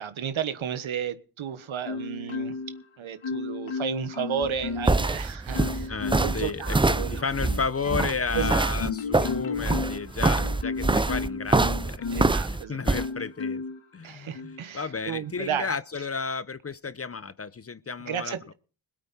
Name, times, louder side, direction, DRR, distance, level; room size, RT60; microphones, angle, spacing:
voice 1, 0.0-2.6 3.0-5.9 6.2-7.3 8.3-8.8 12.1-12.8 14.0-15.7 18.1-18.5, right 8 dB, 75° right, 1.4 m, -33 dB
Marimba xylophone, 1.8-2.8 3.2-5.1 5.5-6.4 7.0-12.4 12.9-13.8 14.3-14.6, left 4 dB, 70° left, 2.0 m, -33 dB
sound 1, 4.4-13.1, right 2 dB, 10° right, 0.5 m, -25 dB
voice 2, 5.6-12.1 12.4-13.6 13.9-18.5, left 5 dB, 30° left, 0.7 m, -33 dB
21.0 x 8.5 x 4.2 m
cardioid pair, 50°, 48 cm